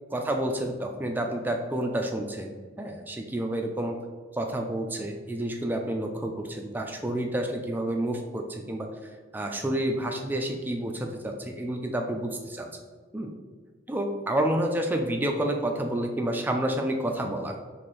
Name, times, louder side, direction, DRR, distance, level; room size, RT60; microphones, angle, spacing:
voice 1, 0.1-4.0 4.3-8.9 9.3-12.7 13.1-13.3 13.9-17.6, right 1 dB, 10° right, 2 dB, 0.3 m, -29 dB
4.2 x 3.1 x 3.1 m, 1.5 s
head